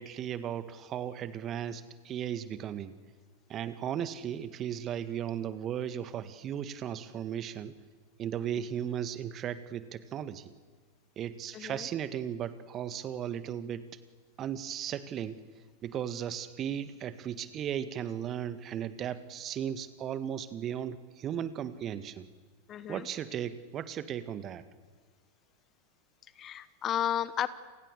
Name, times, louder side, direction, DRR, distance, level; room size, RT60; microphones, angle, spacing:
voice 1, 0.0-2.9 3.5-7.8 8.2-10.5 11.2-13.9 14.4-15.4 15.8-22.3 22.9-24.6, right 9 dB, 30° right, 12 dB, 1.8 m, -36 dB
voice 2, 11.5-11.9 22.7-23.1 26.4-27.5, left 10 dB, 30° left, 15 dB, 1.3 m, -33 dB
30.0 x 29.0 x 6.9 m, 1.5 s
figure-of-eight pair, 90°, 0 cm